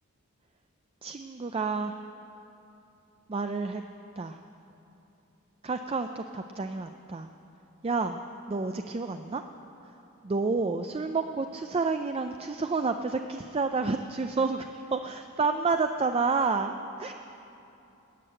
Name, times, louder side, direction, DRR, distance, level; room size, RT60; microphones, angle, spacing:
voice 1, 1.0-2.0 3.3-3.8 4.2-4.4 5.6-7.3 7.8-8.2 8.5-9.4 10.2-17.1, right 4 dB, 25° right, 7 dB, 0.4 m, -29 dB
14.0 x 9.6 x 8.8 m, 2.8 s
head